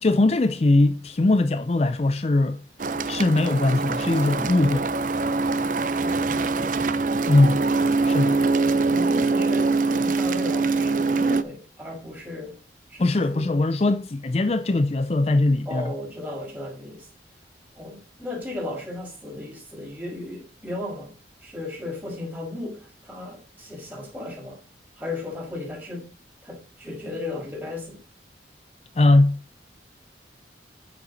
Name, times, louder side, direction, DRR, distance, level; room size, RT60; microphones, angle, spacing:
voice 1, 0.0-2.6 3.1-4.9 7.3-7.6 8.0-8.4 13.0-15.9 29.0-29.4, left 2 dB, 35° left, 0.4 m, -20 dB
sound 1, 2.8-11.4, right 3 dB, 45° right, 0.6 m, -23 dB
voice 2, 5.7-6.7 8.5-12.6 12.9-13.5 15.7-17.1 17.7-21.1 21.4-24.6 25.0-26.1 26.4-28.0, left 2 dB, 10° right, 5.5 m, -35 dB
9.8 x 7.2 x 4.0 m
head